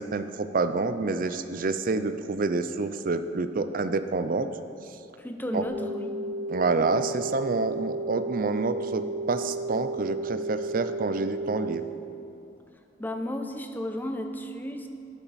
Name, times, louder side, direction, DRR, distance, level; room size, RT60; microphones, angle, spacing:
voice 1, 0.0-4.5 5.5-5.6 6.5-11.9, right 3 dB, 50° right, 10 dB, 0.5 m, -28 dB
voice 2, 5.2-6.2 13.0-14.9, left 1 dB, 10° left, 5 dB, 0.7 m, -33 dB
sound 1, 5.7-11.8, right 2 dB, 80° left, 1.1 m, -33 dB
12.5 x 8.9 x 4.1 m, 2.8 s
head